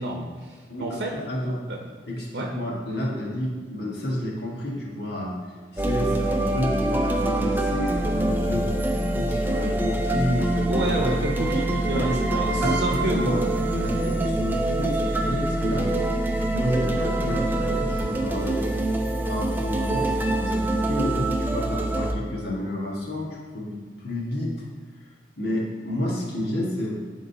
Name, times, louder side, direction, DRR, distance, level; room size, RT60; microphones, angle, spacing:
voice 1, 0.0-1.2 1.7-1.8 2.3-2.5 6.0-6.1 10.7-13.2, right 1 dB, 70° right, 0 dB, 0.7 m, -30 dB
voice 2, 0.7-1.6 2.1-5.3 5.7-8.7 9.1-11.1 11.7-13.4 13.7-15.9 16.5-18.6 19.3-24.6 25.0-25.1 25.4-27.0, left 1 dB, 65° left, -4 dB, 1.6 m, -30 dB
sound 1, 5.8-22.1, right 1 dB, 10° right, 0.4 m, -25 dB
11.5 x 3.8 x 2.8 m, 1.5 s
head